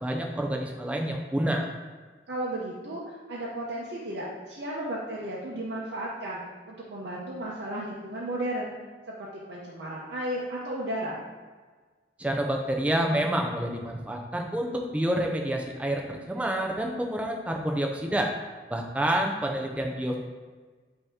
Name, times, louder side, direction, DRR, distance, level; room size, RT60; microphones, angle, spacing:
voice 1, 0.0-1.7 12.2-14.7 14.9-18.3 18.7-20.2, right 1 dB, 10° right, 1 dB, 0.4 m, -28 dB
voice 2, 2.3-8.7 9.1-11.2, right 1 dB, 75° right, -6 dB, 0.7 m, -34 dB
5.5 x 2.8 x 3.5 m, 1.4 s
head